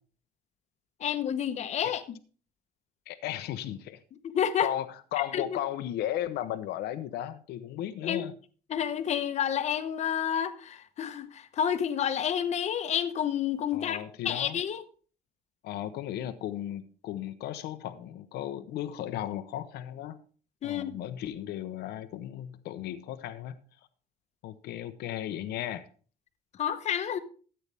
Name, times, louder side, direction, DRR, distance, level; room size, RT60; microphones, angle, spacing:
voice 1, 1.0-2.0 4.2-4.7 5.2-5.6 8.0-8.2 8.7-14.8 20.6-21.0 26.6-27.2, left 9 dB, 45° left, 0.9 m, -29 dB
voice 2, 3.1-4.0 4.6-8.3 13.7-14.6 15.6-20.2 20.6-23.6 24.4-25.9, left 12 dB, 80° left, 0.8 m, -35 dB
13.5 x 8.8 x 3.4 m
cardioid pair, 165°, 17 cm